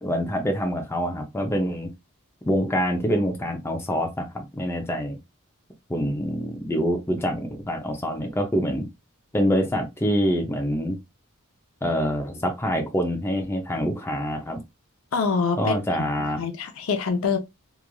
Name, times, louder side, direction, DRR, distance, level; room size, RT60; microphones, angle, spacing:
voice 1, 0.0-1.9 2.5-5.2 5.9-8.9 9.3-11.0 11.8-14.6 15.6-16.4, equal, 10° left, 0.5 m, -25 dB
voice 2, 15.1-16.1 16.4-17.4, left 5 dB, 70° left, 0.6 m, -25 dB
3.0 x 2.4 x 2.2 m
head